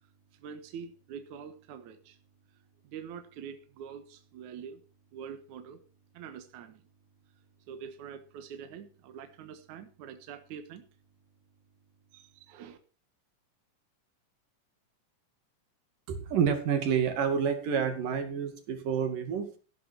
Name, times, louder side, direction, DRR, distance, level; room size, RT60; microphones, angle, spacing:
voice 1, 0.0-2.2 2.5-4.8 5.1-5.8 6.1-6.9 7.7-10.9 12.1-12.8, right 7 dB, 70° right, 2.7 m, -45 dB
voice 2, 16.1-19.6, right 7 dB, 90° right, 4.1 m, -29 dB
15.5 x 11.5 x 4.6 m
omnidirectional pair, 3.7 m